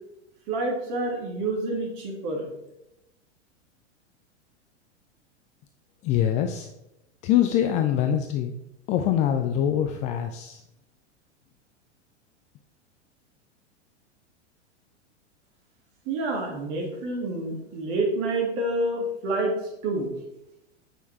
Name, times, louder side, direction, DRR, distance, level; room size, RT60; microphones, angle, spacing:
voice 1, 0.5-2.5 16.1-19.5 19.8-20.1, right 2 dB, 45° right, 0 dB, 2.3 m, -28 dB
voice 2, 6.0-6.7 7.2-8.6 8.9-10.6, left 10 dB, 20° left, 6 dB, 0.3 m, -24 dB
8.2 x 5.9 x 3.3 m, 0.86 s
figure-of-eight pair, 95°, 35 cm